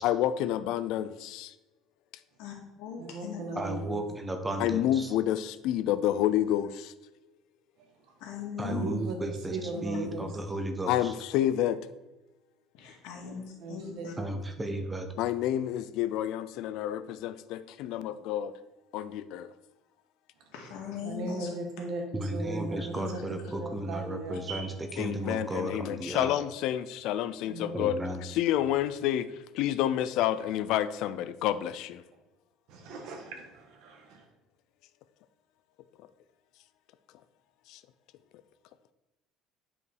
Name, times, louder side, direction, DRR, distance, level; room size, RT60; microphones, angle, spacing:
voice 1, 0.0-1.5 4.6-6.9 10.9-11.8 15.2-18.5 18.9-19.5 22.5-22.7 25.0-32.0 37.7-37.8, left 11 dB, 55° left, 13 dB, 0.4 m, -29 dB
voice 2, 2.4-3.6 8.2-8.9 9.7-10.0 12.7-14.1 20.5-21.5 22.9-23.5, left 6 dB, 75° left, 0 dB, 2.1 m, -40 dB
voice 3, 3.0-4.0 8.1-8.2 8.7-10.3 13.6-14.2 21.0-23.2 23.4-24.7 27.5-27.9 32.7-34.2, right 2 dB, 55° right, 3 dB, 1.7 m, -38 dB
voice 4, 3.6-5.1 8.6-11.1 14.2-15.1 22.1-24.7 25.0-26.3 27.7-28.2, right 1 dB, 10° right, 6 dB, 0.7 m, -34 dB
9.6 x 5.2 x 4.7 m, 1.1 s
cardioid pair, 180°, 0 cm